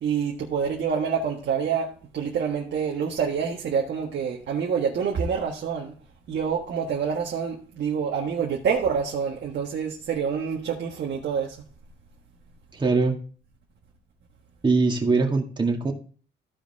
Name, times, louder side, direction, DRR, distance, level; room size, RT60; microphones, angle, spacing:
voice 1, 0.0-5.9 6.3-11.6, right 6 dB, 60° right, 1.5 m, -27 dB
voice 2, 12.7-13.2 14.6-15.9, right 3 dB, 25° right, 2.0 m, -22 dB
15.0 x 5.0 x 3.5 m
cardioid pair, 90°, 20 cm